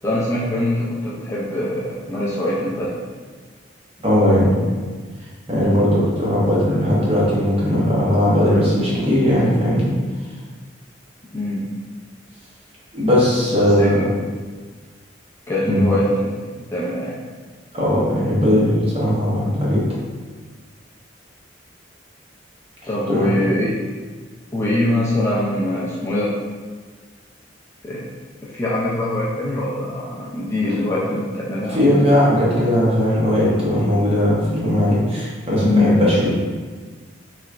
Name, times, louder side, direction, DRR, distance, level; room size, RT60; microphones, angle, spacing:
voice 1, 0.0-3.0 4.2-4.8 11.3-11.7 13.5-14.0 15.5-16.3 16.7-17.2 22.9-23.7 24.5-26.3 27.8-28.1 28.5-31.8, left 1 dB, 15° left, -7 dB, 0.4 m, -23 dB
voice 2, 4.0-4.7 5.5-9.9 12.9-14.1 15.6-15.9 17.7-19.8 23.1-23.3 31.7-36.3, left 1 dB, 30° right, -7 dB, 0.9 m, -18 dB
3.2 x 3.0 x 2.4 m, 1.4 s
head